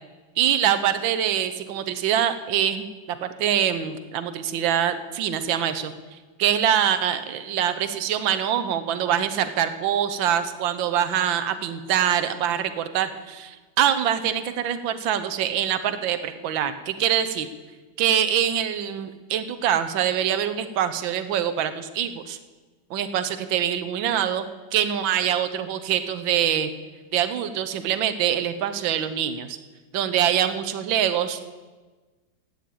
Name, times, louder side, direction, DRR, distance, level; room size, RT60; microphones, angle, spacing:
voice 1, 0.4-5.9 6.4-17.5 18.0-22.4 22.9-24.5 24.7-26.7 27.1-29.6 29.9-31.5, right 9 dB, 75° right, 10 dB, 1.6 m, -24 dB
14.0 x 8.9 x 8.5 m, 1.3 s
omnidirectional pair, 2.1 m